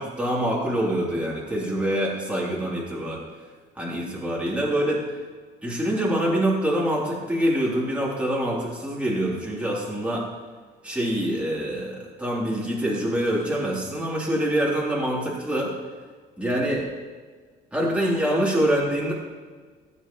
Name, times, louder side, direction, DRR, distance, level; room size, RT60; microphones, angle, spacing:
voice 1, 0.0-3.2 3.7-5.0 5.6-10.3 10.8-15.7 16.4-16.9 17.7-19.1, right 1 dB, 5° right, -5 dB, 3.1 m, -25 dB
15.5 x 8.3 x 3.0 m, 1.5 s
cardioid pair, 110°, 17 cm